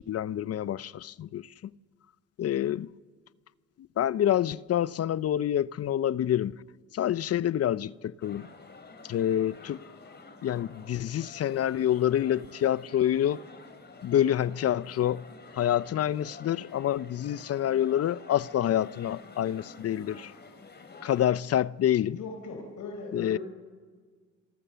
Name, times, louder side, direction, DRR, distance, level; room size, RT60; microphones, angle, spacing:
voice 1, 0.0-1.5 2.4-2.9 4.0-6.5 6.9-8.5 9.1-9.8 10.4-13.4 14.0-15.2 15.5-20.3 21.0-22.2 23.1-23.4, left 11 dB, 55° left, 0.6 m, -27 dB
sound 1, 8.2-21.3, left 3 dB, 35° left, 3.5 m, -49 dB
voice 2, 22.2-23.4, left 3 dB, 75° left, 4.3 m, -39 dB
27.0 x 24.0 x 6.9 m
cardioid pair, 90°, 30 cm